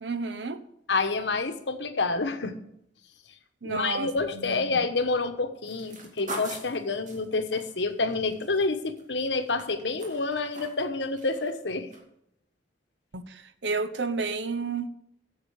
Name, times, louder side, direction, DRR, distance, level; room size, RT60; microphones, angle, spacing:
voice 1, 0.0-0.6 3.6-4.8 13.1-14.9, right 4 dB, 80° right, 10 dB, 0.8 m, -31 dB
voice 2, 0.9-2.5 3.6-11.9, left 3 dB, 90° left, 7 dB, 1.2 m, -28 dB
sound 1, 5.6-9.0 9.3-10.9 11.2-11.6 11.9-12.0, right 2 dB, 45° right, 2.3 m, -41 dB
8.1 x 7.5 x 8.3 m, 0.75 s
head